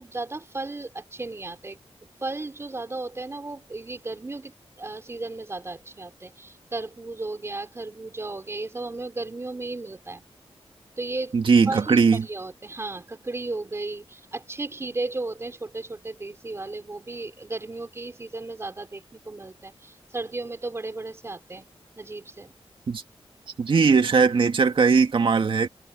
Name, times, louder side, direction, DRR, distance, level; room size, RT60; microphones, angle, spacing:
voice 1, 0.0-1.8 2.2-4.5 4.8-10.2 11.0-11.4 11.7-21.7 22.0-22.5, right 2 dB, 25° right, 4.8 m, -34 dB
voice 2, 11.3-12.3 22.9-23.0 23.6-25.7, right 5 dB, 55° right, 2.2 m, -19 dB
wide cardioid pair, 150°, 10 cm